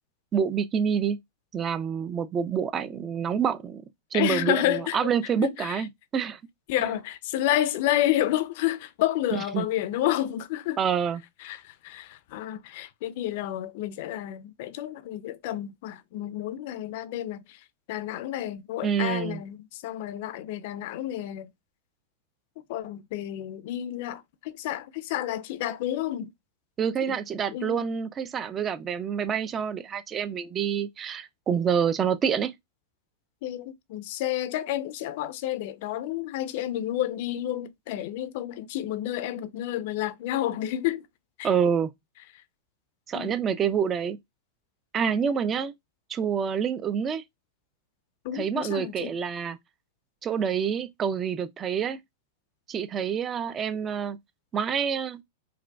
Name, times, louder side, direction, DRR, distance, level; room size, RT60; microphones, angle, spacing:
voice 1, 0.3-1.2 1.5-3.8 4.1-6.4 6.8-6.9 9.3-9.6 10.8-11.2 18.8-19.4 26.8-32.5 41.4-41.9 43.1-44.2 44.9-45.7 46.1-47.2 48.3-49.6 50.2-52.0 52.7-54.2 54.5-55.2, right 7 dB, 25° right, 0.4 m, -27 dB
voice 2, 4.1-5.1 5.4-5.8 6.7-10.8 11.4-17.6 17.9-21.5 22.7-26.3 27.1-27.2 27.5-27.8 33.4-41.0 41.4-41.5 43.1-43.3 48.2-49.1, left 13 dB, 60° left, 0.4 m, -30 dB
4.7 x 2.2 x 2.3 m
hypercardioid pair, 105°, 0 cm